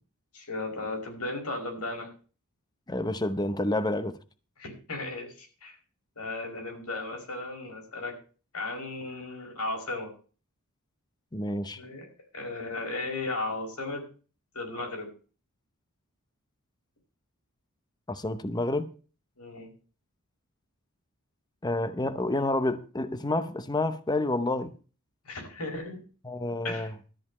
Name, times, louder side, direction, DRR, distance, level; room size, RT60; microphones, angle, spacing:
voice 1, 0.3-2.1 4.6-5.8 6.2-8.2 8.5-10.1 11.8-12.1 12.3-14.0 14.5-15.1 19.4-19.7 25.3-26.0 26.6-26.9, left 2 dB, 85° left, 5.2 m, -35 dB
voice 2, 2.9-4.2 11.3-11.8 18.1-18.9 21.6-24.7 26.2-26.9, left 2 dB, 20° left, 0.8 m, -29 dB
13.0 x 5.1 x 8.5 m
head